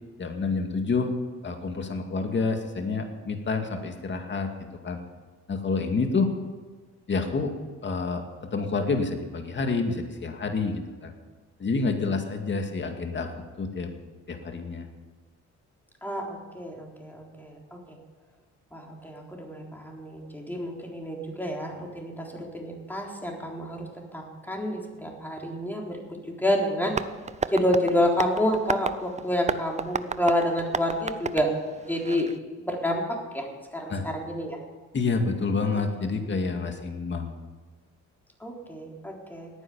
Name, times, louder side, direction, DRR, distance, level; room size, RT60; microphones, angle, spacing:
voice 1, 0.2-1.1 1.4-4.5 4.8-5.0 5.5-6.3 7.1-7.5 7.8-8.2 8.5-11.1 11.6-13.3 13.6-13.9 14.3-14.9 33.9-34.1 34.9-37.3, left 4 dB, 40° left, 5 dB, 2.2 m, -28 dB
voice 2, 16.0-18.0 18.7-26.9 27.5-32.3 32.6-33.5 33.7-34.6 38.4-39.5, equal, 5° left, -1 dB, 3.9 m, -29 dB
Tap, 26.9-32.4, right 5 dB, 25° right, 0.6 m, -33 dB
18.0 x 10.0 x 7.1 m, 1.4 s
cardioid pair, 90°, 30 cm